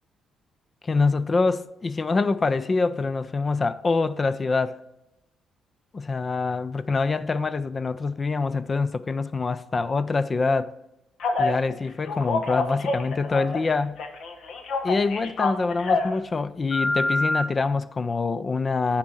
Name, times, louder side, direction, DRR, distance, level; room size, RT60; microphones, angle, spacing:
voice 1, 0.8-4.8 5.9-10.7 11.4-14.0 14.8-19.0, left 4 dB, 35° left, 0.4 m, -25 dB
Telephone, 11.2-11.5 12.0-13.7 14.0-16.1 16.7-17.4, left 3 dB, 70° left, 1.1 m, -26 dB
10.0 x 4.3 x 6.1 m
cardioid pair, 90°, 0 cm